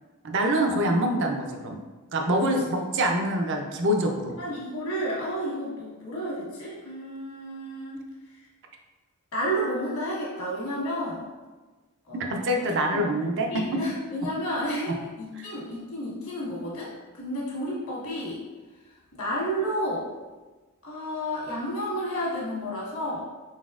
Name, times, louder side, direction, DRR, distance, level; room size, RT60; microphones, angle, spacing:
voice 1, 0.2-1.8 2.1-4.4 12.1-13.8, right 1 dB, 55° right, 2 dB, 0.5 m, -25 dB
voice 2, 2.4-2.8 4.4-8.0 8.3-8.4 9.3-11.3 12.0-13.0 13.5-18.4 18.9-20.1 20.8-23.2, equal, 65° left, -6 dB, 1.4 m, -31 dB
4.0 x 4.0 x 2.4 m, 1.2 s
head